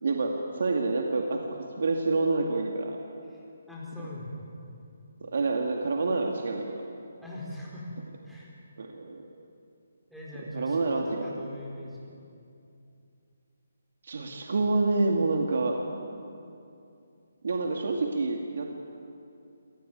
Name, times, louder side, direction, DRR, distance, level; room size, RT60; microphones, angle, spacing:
voice 1, 0.0-3.0 5.2-6.8 8.8-9.4 10.5-11.3 14.0-16.2 17.4-18.8, right 3 dB, 65° right, 2 dB, 2.3 m, -28 dB
voice 2, 3.3-4.4 7.2-7.9 8.2-8.6 10.1-12.2, left 1 dB, ahead, -7 dB, 4.5 m, -41 dB
26.0 x 19.0 x 9.2 m, 2.6 s
hypercardioid pair, 165°, 0 cm